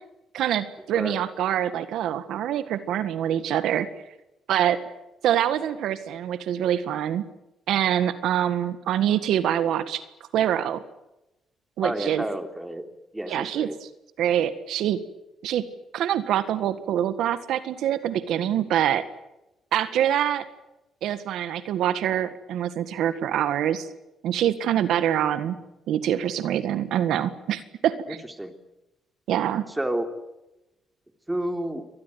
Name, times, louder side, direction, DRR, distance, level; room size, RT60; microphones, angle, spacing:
voice 1, 0.3-3.9 4.5-4.8 5.2-7.2 7.7-10.0 10.3-10.8 11.8-12.2 13.3-13.7 14.2-15.0 15.4-15.6 15.9-19.0 19.7-20.4 21.0-23.9 24.2-25.6 25.9-28.2 29.3-29.6, right 10 dB, 80° right, 13 dB, 1.6 m, -25 dB
voice 2, 11.8-12.8 13.1-13.8 28.1-28.5 29.7-30.1 31.3-31.8, right 1 dB, 10° right, 8 dB, 3.1 m, -30 dB
24.5 x 19.5 x 9.3 m, 0.94 s
cardioid pair, 90°, 0 cm